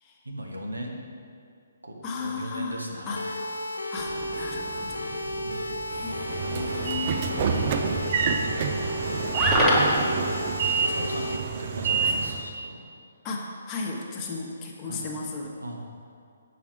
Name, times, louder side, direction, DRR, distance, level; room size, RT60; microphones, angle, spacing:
voice 1, 0.2-1.0 1.8-3.2 5.4-5.8 10.4-11.3 11.6-12.8 14.9-15.1 15.6-15.9, right 1 dB, 85° right, 0 dB, 1.1 m, -38 dB
voice 2, 2.0-3.4 3.9-5.2 5.9-7.4 10.9-11.0 12.0-12.2 13.2-15.5, left 4 dB, 20° left, -2 dB, 1.1 m, -36 dB
sound 1, 3.2-11.4, left 1 dB, 80° left, 0.6 m, -33 dB
sound 2, 4.0-10.0, equal, 10° right, 1.2 m, -30 dB
Train / Sliding door, 6.0-12.5, right 5 dB, 40° right, 0.5 m, -28 dB
7.2 x 6.2 x 4.6 m, 2.4 s
figure-of-eight pair, 135°, 0 cm